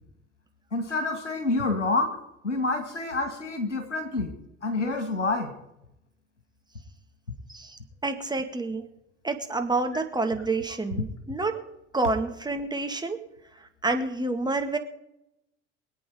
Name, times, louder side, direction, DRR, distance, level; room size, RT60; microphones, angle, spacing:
voice 1, 0.7-2.2 2.4-4.3 4.6-5.5, left 3 dB, 85° left, 6 dB, 2.1 m, -27 dB
voice 2, 7.5-8.8 9.2-11.5 11.9-13.2 13.8-14.8, right 3 dB, 10° right, 5 dB, 2.1 m, -28 dB
24.5 x 8.6 x 5.0 m, 0.84 s
figure-of-eight pair, 65°, 35 cm